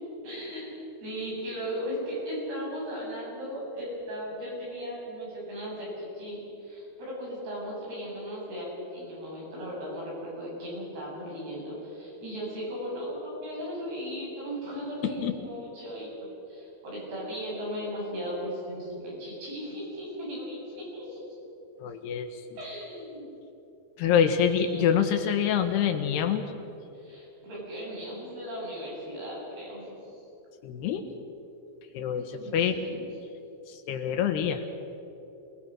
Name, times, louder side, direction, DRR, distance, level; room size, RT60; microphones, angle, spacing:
voice 1, 0.2-0.7 1.0-21.2 22.6-23.3 24.1-25.0 26.9-30.1 32.4-32.5 32.8-33.0, equal, 80° right, -5 dB, 9.8 m, -37 dB
voice 2, 15.0-15.3 21.8-22.4 24.0-26.4 30.6-31.1 31.9-32.8 33.7-34.6, left 8 dB, 85° left, 6 dB, 3.5 m, -26 dB
27.5 x 20.0 x 6.4 m, 2.9 s
omnidirectional pair, 4.6 m